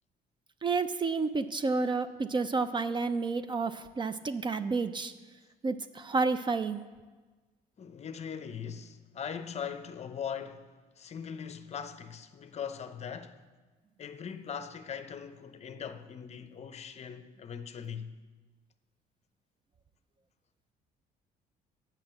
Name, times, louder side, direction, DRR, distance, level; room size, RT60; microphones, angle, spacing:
voice 1, 0.6-5.1 5.6-6.8, right 4 dB, 30° right, 0.4 m, -30 dB
voice 2, 7.8-13.4 14.0-18.2, left 7 dB, 40° left, 0.7 m, -40 dB
8.7 x 6.1 x 7.7 m
cardioid pair, 110°, 17 cm